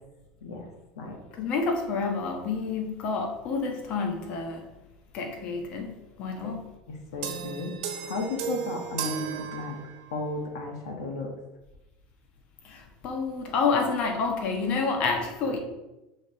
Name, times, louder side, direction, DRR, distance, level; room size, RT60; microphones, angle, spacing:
voice 1, 1.3-4.6 5.1-6.6 12.6-15.6, left 4 dB, 50° left, 2 dB, 1.3 m, -29 dB
voice 2, 7.1-9.8 10.1-11.3, left 3 dB, 85° left, 2 dB, 1.3 m, -34 dB
sound 1, 7.2-10.2, right 7 dB, 65° right, 1.3 m, -35 dB
6.2 x 3.3 x 5.7 m, 0.99 s
supercardioid pair, 115°, 2 cm